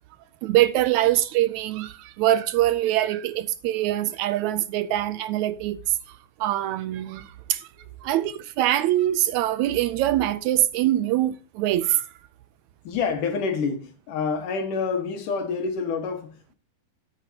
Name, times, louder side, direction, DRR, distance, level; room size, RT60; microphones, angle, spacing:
voice 1, 0.4-7.7 8.0-12.1, right 13 dB, 75° right, 1.8 m, -24 dB
voice 2, 12.8-16.6, left 5 dB, 80° left, 3.3 m, -27 dB
12.5 x 9.2 x 2.9 m
omnidirectional pair, 3.6 m